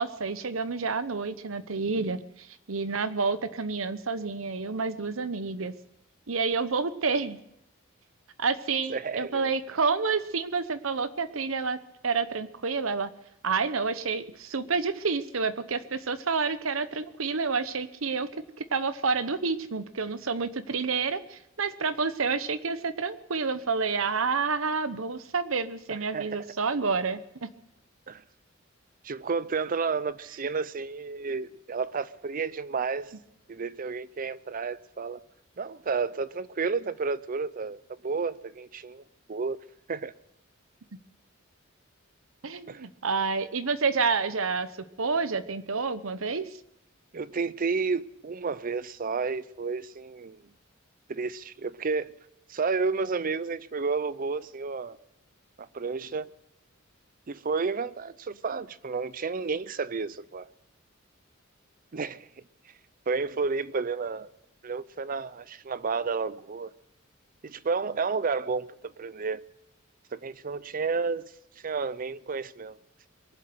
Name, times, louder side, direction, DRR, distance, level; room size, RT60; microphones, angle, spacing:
voice 1, 0.0-5.7 6.3-7.4 8.4-11.8 12.0-13.1 13.4-18.3 18.6-27.5 42.4-44.7 45.0-46.5, right 4 dB, 80° right, 0.9 m, -29 dB
voice 2, 8.9-9.5 25.9-26.5 28.1-28.2 29.0-33.1 33.5-35.2 35.6-39.0 39.3-39.6 39.9-40.1 42.7-42.8 47.1-50.4 51.1-52.1 52.5-55.0 55.6-56.3 57.3-60.5 61.9-62.3 63.1-64.3 64.6-66.7 67.4-69.4 70.1-71.3 71.6-72.8, right 4 dB, 45° right, 0.5 m, -31 dB
23.0 x 7.7 x 7.8 m
head